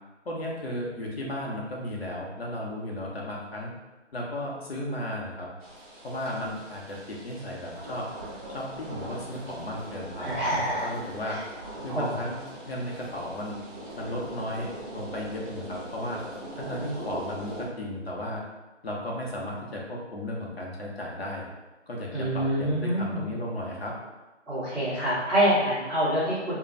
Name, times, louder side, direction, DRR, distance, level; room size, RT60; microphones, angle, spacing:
voice 1, 0.2-3.7 4.1-5.5 6.0-8.1 8.5-11.4 11.8-13.6 13.9-16.2 16.5-18.4 18.8-21.5 21.9-23.9, left 1 dB, 55° left, -2 dB, 0.8 m, -35 dB
sound 1, 5.6-17.7, right 1 dB, 40° right, 1.1 m, -41 dB
voice 2, 10.2-10.9 11.3-11.4 11.9-12.1 22.1-23.2 24.5-26.6, equal, 5° left, -28 dB, 0.9 m, -26 dB
2.6 x 2.2 x 3.1 m, 1.1 s
figure-of-eight pair, 165°, 36 cm